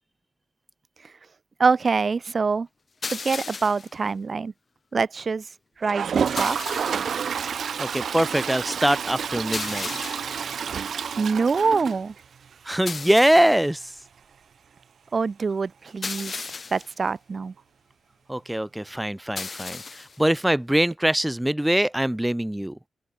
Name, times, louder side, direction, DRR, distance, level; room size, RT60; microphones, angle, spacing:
voice 1, 1.6-2.7 3.1-4.5 4.9-5.5 5.8-6.6 11.2-12.1 15.1-16.4 16.7-17.5, right 4 dB, 35° right, 3.9 m, -25 dB
sound 1, 3.0-3.9 6.4-7.2 9.5-10.4 12.9-13.7 16.0-16.9 19.4-20.2, left 4 dB, 35° left, 7.2 m, -35 dB
Toilet flush, 5.8-12.5 12.9-13.0 13.2-13.3 13.5-13.6 16.2-16.3 17.6-17.7, right 7 dB, 60° right, 5.3 m, -29 dB
voice 2, 7.8-9.9 12.6-13.9 18.3-22.8, right 1 dB, 5° right, 1.3 m, -23 dB
open air
wide cardioid pair, 140°, 0 cm